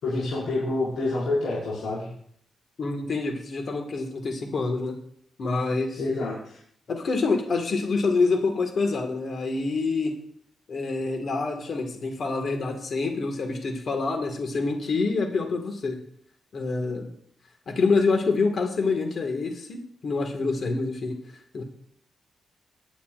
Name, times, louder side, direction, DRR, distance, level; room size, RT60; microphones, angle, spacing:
voice 1, 0.0-2.1 6.0-6.6, left 2 dB, 80° left, -9 dB, 5.6 m, -27 dB
voice 2, 2.8-5.0 5.4-6.0 6.9-10.1 10.7-16.0 16.5-17.1 17.7-21.6, left 3 dB, 55° left, 3 dB, 1.8 m, -26 dB
19.0 x 10.0 x 2.5 m, 0.65 s
cardioid pair, 100°, 0 cm